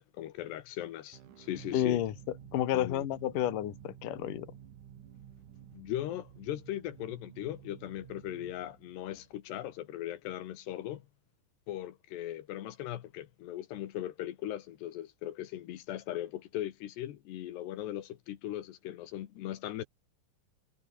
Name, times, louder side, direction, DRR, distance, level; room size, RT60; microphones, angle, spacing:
voice 1, 0.0-2.0 2.7-3.1 5.7-11.0 11.7-19.8, left 13 dB, 80° left, 3.6 m, -39 dB
sound 1, 1.1-9.8, right 9 dB, 55° right, 3.0 m, -52 dB
voice 2, 1.7-2.1 2.5-4.5, left 12 dB, 60° left, 3.0 m, -30 dB
omnidirectional pair, 4.8 m